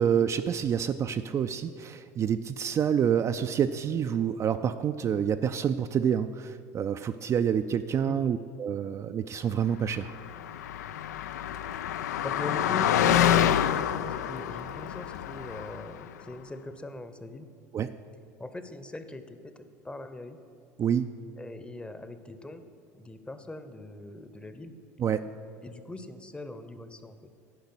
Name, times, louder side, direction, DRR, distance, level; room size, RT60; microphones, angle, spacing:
voice 1, 0.0-10.1 17.7-17.9 20.8-21.1 25.0-25.3, right 8 dB, 35° right, 8 dB, 0.4 m, -27 dB
Car passing by, 10.1-16.0, left 10 dB, 85° left, 0.3 m, -27 dB
voice 2, 12.2-17.5 18.4-20.4 21.4-22.6 22.9-24.8 25.6-27.3, left 2 dB, 10° left, 10 dB, 0.8 m, -40 dB
10.5 x 5.0 x 8.0 m, 2.6 s
hypercardioid pair, 80°, 9 cm